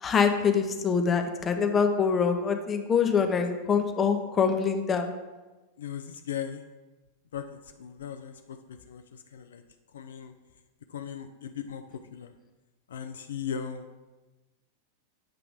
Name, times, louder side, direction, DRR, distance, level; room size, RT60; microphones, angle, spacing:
voice 1, 0.0-5.1, left 6 dB, 20° left, 5 dB, 0.6 m, -25 dB
voice 2, 5.8-6.6 7.3-8.6 8.9-9.0 9.3-9.6 9.9-10.3 10.9-11.8 12.1-12.3 12.9-14.0, left 8 dB, 65° left, 7 dB, 0.3 m, -37 dB
7.6 x 2.9 x 4.8 m, 1.2 s
figure-of-eight pair, 90°, 0 cm